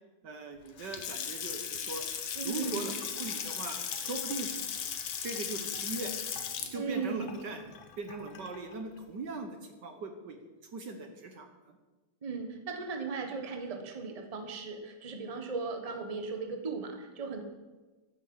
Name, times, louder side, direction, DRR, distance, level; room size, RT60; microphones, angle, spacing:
voice 1, 0.2-2.1 2.4-4.5 5.2-6.1 6.7-7.6 8.0-10.4 10.7-11.8, right 3 dB, 60° right, 6 dB, 1.6 m, -40 dB
Water tap faucet / Sink (filling or washing) / Splash splatter, 0.7-8.7, left 8 dB, 70° left, 1.9 m, -37 dB
voice 2, 2.3-2.9 6.7-7.3 12.2-17.4, right 4 dB, 20° right, 5 dB, 1.2 m, -37 dB
12.5 x 8.8 x 7.2 m, 1.2 s
omnidirectional pair, 2.3 m